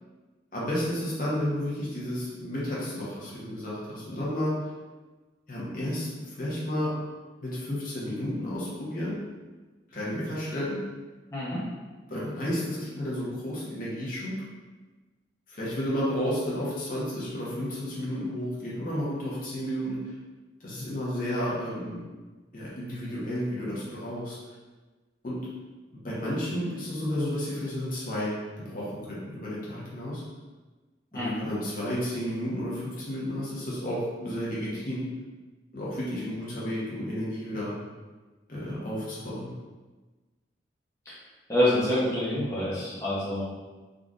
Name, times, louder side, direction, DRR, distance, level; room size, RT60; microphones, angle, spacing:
voice 1, 0.5-4.5 5.5-6.9 7.4-9.2 9.9-10.8 12.1-14.4 15.5-20.1 20.6-22.0 22.5-24.4 25.2-25.4 26.0-28.3 28.6-30.2 31.1-35.0 35.7-37.7 38.5-39.5, equal, 45° left, -7 dB, 0.9 m, -32 dB
voice 2, 31.1-31.5 41.5-43.4, left 1 dB, 15° left, -9 dB, 0.8 m, -26 dB
3.8 x 2.5 x 2.4 m, 1.2 s
head